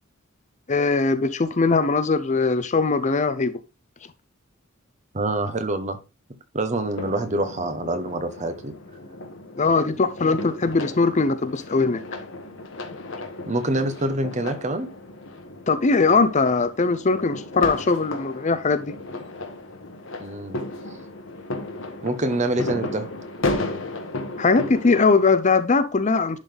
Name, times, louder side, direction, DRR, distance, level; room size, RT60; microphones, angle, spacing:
voice 1, 0.7-3.6 9.6-12.0 15.7-18.9 24.4-26.4, left 4 dB, 35° left, 0.6 m, -20 dB
voice 2, 5.1-6.0 6.5-8.8 13.5-14.9 20.2-20.6 22.0-23.1, right 2 dB, 35° right, 1.0 m, -26 dB
sound 1, 6.8-25.1, left 2 dB, 65° left, 1.2 m, -34 dB
11.0 x 4.1 x 3.4 m
head